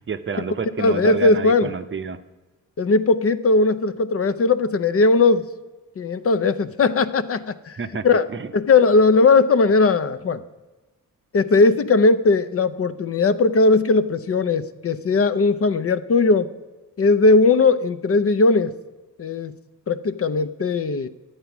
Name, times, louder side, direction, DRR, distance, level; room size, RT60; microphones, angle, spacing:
voice 1, 0.0-2.2 7.8-8.0 8.3-8.5, right 5 dB, 35° right, 9 dB, 0.7 m, -29 dB
voice 2, 0.8-1.7 2.8-5.5 6.0-8.3 8.5-10.4 11.3-16.5 17.0-18.8 19.2-19.6 19.9-21.1, left 3 dB, 40° left, 13 dB, 0.6 m, -18 dB
11.5 x 8.2 x 6.0 m, 1.2 s
cardioid pair, 90°, 36 cm